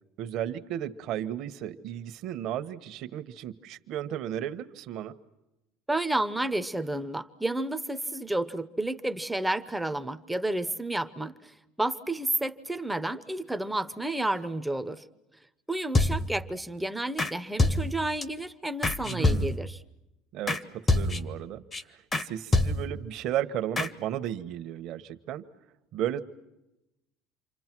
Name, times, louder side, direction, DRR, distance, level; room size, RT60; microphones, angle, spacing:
voice 1, 0.2-5.1 19.0-19.6 20.3-21.6 21.9-25.4 25.9-26.2, right 11 dB, 60° right, 9 dB, 1.2 m, -34 dB
voice 2, 5.9-15.0 15.7-19.8, right 1 dB, 5° right, 11 dB, 0.8 m, -31 dB
sound 1, 15.9-16.5 17.2-17.3 17.6-18.2 18.8-19.8 20.5-20.6 20.9-21.4 21.7-21.8 22.1-22.3 22.5-23.1 23.8-23.9, left 2 dB, 20° left, 1.0 m, -26 dB
28.5 x 25.0 x 6.1 m, 0.95 s
cardioid pair, 125°, 0 cm